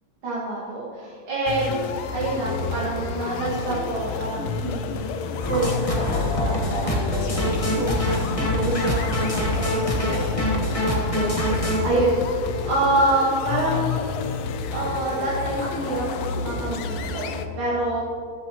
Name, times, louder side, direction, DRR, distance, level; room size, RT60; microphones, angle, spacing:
voice 1, 0.2-1.8 2.1-5.0 5.4-8.0 8.3-10.3 10.9-11.5 11.8-14.0 14.7-16.0 16.3-18.0, right 2 dB, 80° right, -8 dB, 3.0 m, -27 dB
sound 1, 1.5-17.5, left 4 dB, 80° left, 1.6 m, -30 dB
sound 2, 5.4-11.8, left 1 dB, 20° left, 1.1 m, -25 dB
13.0 x 12.5 x 3.0 m, 2.4 s
omnidirectional pair, 2.3 m